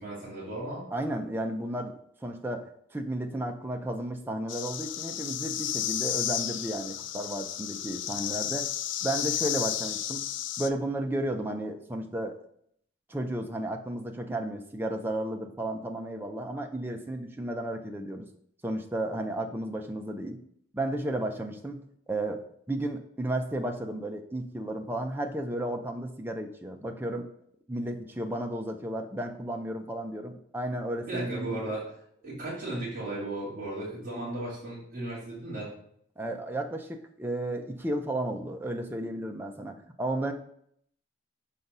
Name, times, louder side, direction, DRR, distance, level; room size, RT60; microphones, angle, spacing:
voice 1, 0.0-0.8 31.1-31.8 32.2-35.7, right 2 dB, 45° right, -6 dB, 2.2 m, -35 dB
voice 2, 0.9-8.7 9.0-10.3 10.6-12.4 13.1-18.3 18.6-20.4 20.7-22.4 22.7-27.3 27.7-31.7 36.2-40.3, right 1 dB, 10° right, 3 dB, 0.5 m, -33 dB
sound 1, 4.5-10.7, left 11 dB, 75° left, 0.4 m, -32 dB
5.9 x 4.1 x 5.3 m, 0.68 s
head